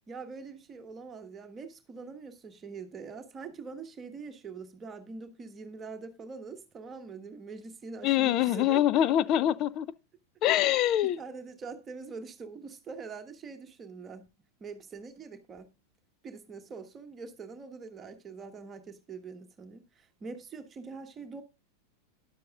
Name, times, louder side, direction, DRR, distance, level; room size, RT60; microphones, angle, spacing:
voice 1, 0.1-9.0 10.7-14.3 14.6-15.7 16.2-21.4, right 4 dB, 20° right, 1.3 m, -44 dB
voice 2, 8.0-9.9 10.4-11.2, left 12 dB, 35° left, 0.5 m, -24 dB
13.0 x 10.0 x 2.4 m
figure-of-eight pair, 90°, 0 cm